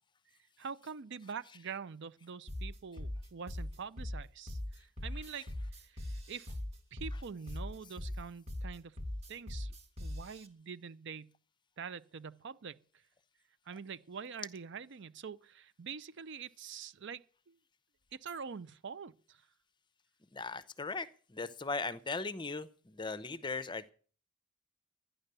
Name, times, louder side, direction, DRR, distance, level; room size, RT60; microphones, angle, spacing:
voice 1, 0.6-6.6 6.9-9.0 9.3-9.7 10.0-11.3 11.8-12.8 13.7-17.6 18.1-19.4, right 6 dB, 60° right, 0.5 m, -45 dB
sound 1, 2.5-10.5, left 1 dB, 30° right, 1.4 m, -40 dB
voice 2, 20.3-23.9, left 3 dB, 25° left, 0.7 m, -38 dB
12.0 x 10.0 x 6.7 m
head